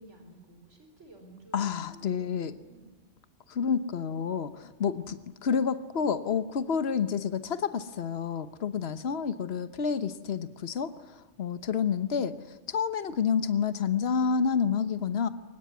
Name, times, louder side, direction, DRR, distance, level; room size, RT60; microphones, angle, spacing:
voice 1, 0.0-2.9 4.8-5.4, right 2 dB, 75° right, 5 dB, 4.6 m, -53 dB
voice 2, 1.5-2.5 3.5-12.4 12.7-15.3, left 6 dB, 60° left, 12 dB, 1.3 m, -29 dB
23.5 x 20.5 x 9.5 m, 1.2 s
omnidirectional pair, 1.2 m